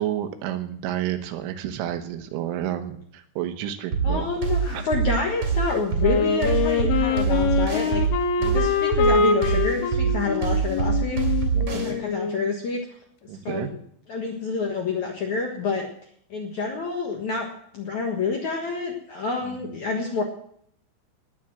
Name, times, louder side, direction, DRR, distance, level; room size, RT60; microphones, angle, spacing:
voice 1, 0.0-4.3 4.7-4.9 11.5-12.0 13.3-13.7 19.6-19.7, right 11 dB, 80° right, 9 dB, 3.6 m, -30 dB
sound 1, 3.9-11.9, right 6 dB, 40° right, 3.2 m, -24 dB
voice 2, 4.0-8.0 8.4-11.2 11.7-12.8 13.4-13.7 14.1-15.9 16.3-17.5 17.7-20.2, left 4 dB, 60° left, 1 dB, 2.0 m, -28 dB
Wind instrument woodwind instrument, 6.0-12.6, left 5 dB, 85° left, 3.8 m, -24 dB
19.0 x 7.4 x 7.7 m, 0.66 s
omnidirectional pair, 5.6 m